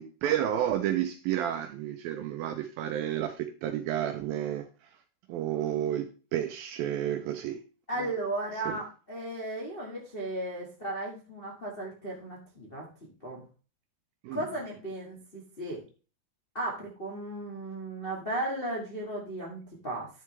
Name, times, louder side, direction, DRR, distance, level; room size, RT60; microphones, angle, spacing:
voice 1, 0.0-4.9 5.3-7.6 8.0-8.1 8.7-8.8 14.2-14.5, right 11 dB, 85° right, 7 dB, 2.2 m, -31 dB
voice 2, 7.9-12.9 13.2-13.4 14.3-15.8 16.5-20.1, right 1 dB, 80° left, -3 dB, 0.5 m, -35 dB
11.0 x 6.6 x 3.3 m, 0.35 s
omnidirectional pair, 4.8 m